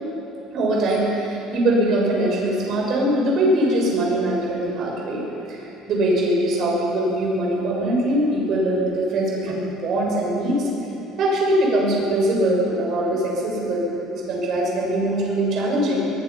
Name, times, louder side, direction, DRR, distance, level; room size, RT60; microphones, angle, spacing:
voice 1, 0.5-10.7 11.2-16.1, right 1 dB, 45° right, -2 dB, 6.4 m, -22 dB
23.0 x 21.0 x 5.8 m, 2.8 s
cardioid pair, 155°, 0 cm